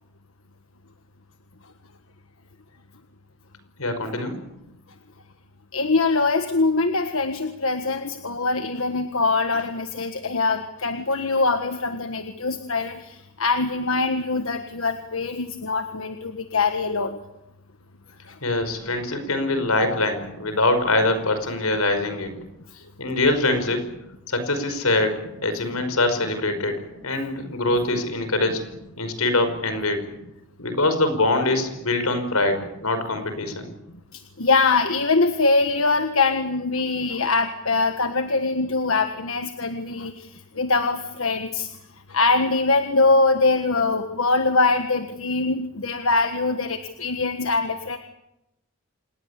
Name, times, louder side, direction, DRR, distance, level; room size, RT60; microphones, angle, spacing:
voice 1, 3.8-4.3 18.4-22.3 23.0-23.8 24.3-28.6 29.0-30.0 30.6-33.7, left 2 dB, 90° left, 9 dB, 5.4 m, -23 dB
voice 2, 5.7-17.2 18.3-18.4 34.1-40.3 40.6-41.7 42.1-48.0, left 3 dB, 70° left, 7 dB, 1.6 m, -23 dB
27.5 x 20.0 x 8.4 m, 0.87 s
head